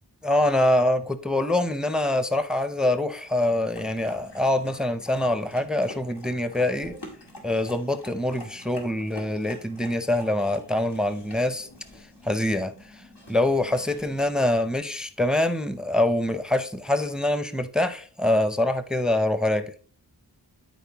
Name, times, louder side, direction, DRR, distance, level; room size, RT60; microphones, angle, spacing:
voice 1, 0.2-7.0 7.4-11.7 12.2-12.7 13.3-19.7, left 1 dB, ahead, 0.6 m, -24 dB
sound 1, 3.4-14.3, left 1 dB, 85° left, 2.1 m, -47 dB
12.5 x 4.3 x 2.9 m
wide cardioid pair, 55°, 40 cm